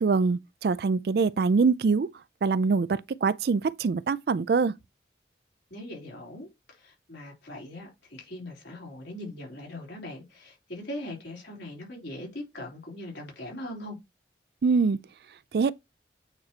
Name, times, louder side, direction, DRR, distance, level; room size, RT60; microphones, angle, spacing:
voice 1, 0.0-2.1 2.4-4.7 14.6-15.0 15.5-15.7, right 4 dB, 60° right, 0.4 m, -24 dB
voice 2, 5.7-14.0, left 1 dB, 75° left, 3.6 m, -40 dB
8.7 x 4.5 x 2.9 m
head